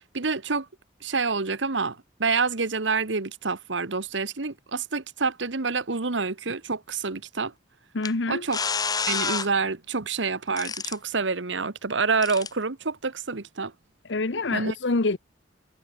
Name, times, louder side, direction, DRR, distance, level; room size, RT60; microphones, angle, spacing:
voice 1, 0.1-0.7 1.0-7.5 8.3-8.6 9.1-13.7 14.5-14.7, right 4 dB, 80° right, 1.4 m, -27 dB
voice 2, 7.9-8.5 14.1-15.2, left 3 dB, 75° left, 1.1 m, -26 dB
sound 1, 8.0-8.1 8.5-9.5 10.6-11.0 12.2-12.5, left 5 dB, 20° left, 0.8 m, -28 dB
head